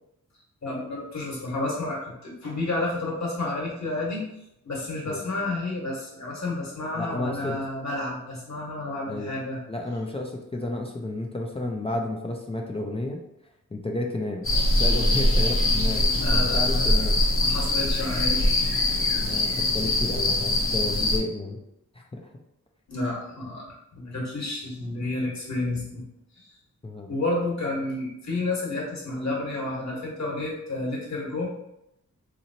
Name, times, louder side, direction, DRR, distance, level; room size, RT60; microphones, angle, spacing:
voice 1, 0.6-4.2 4.6-9.6 16.1-16.9 17.4-18.5 22.9-26.0 26.4-26.5 27.1-31.5, left 2 dB, 60° left, -3 dB, 1.4 m, -30 dB
voice 2, 6.9-7.6 9.1-9.3 9.7-13.2 13.7-14.5 14.8-17.2 19.2-21.6 21.9-22.3 26.8-27.1, left 2 dB, 20° left, 0 dB, 0.4 m, -31 dB
sound 1, 14.4-21.2, left 1 dB, 45° left, 0.7 m, -23 dB
3.9 x 2.9 x 2.7 m, 0.82 s
wide cardioid pair, 125°, 31 cm